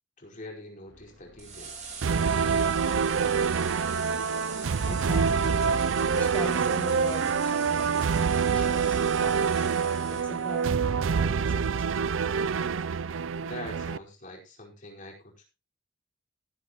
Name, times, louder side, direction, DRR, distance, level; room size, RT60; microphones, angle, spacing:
voice 1, 0.2-1.9 13.4-15.5, left 1 dB, 40° left, -1 dB, 5.0 m, -44 dB
sound 1, 0.9-7.9, left 1 dB, 65° left, 2.7 m, -56 dB
sound 2, 1.4-10.7, right 5 dB, 40° right, 5.1 m, -42 dB
sound 3, 2.0-14.0, right 6 dB, 80° right, 0.5 m, -26 dB
voice 2, 4.9-5.8 6.1-11.9, equal, 5° left, -1 dB, 3.1 m, -41 dB
15.5 x 11.5 x 3.1 m, 0.27 s
head